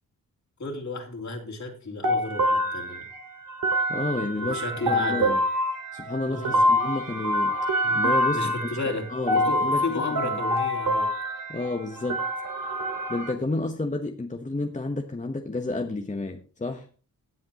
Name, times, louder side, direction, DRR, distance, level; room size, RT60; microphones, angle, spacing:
voice 1, 0.6-3.1 4.4-5.4 6.3-6.7 7.8-8.0 8.3-11.1, left 3 dB, 50° left, 2 dB, 3.1 m, -33 dB
sound 1, 2.0-13.3, equal, 70° right, 2.2 m, -26 dB
voice 2, 3.9-5.4 5.9-7.6 7.9-8.5 9.1-9.8 10.1-10.4 11.5-12.2 13.1-16.9, left 2 dB, 20° left, 4 dB, 1.0 m, -30 dB
17.5 x 7.5 x 2.9 m, 0.38 s
cardioid pair, 85°, 36 cm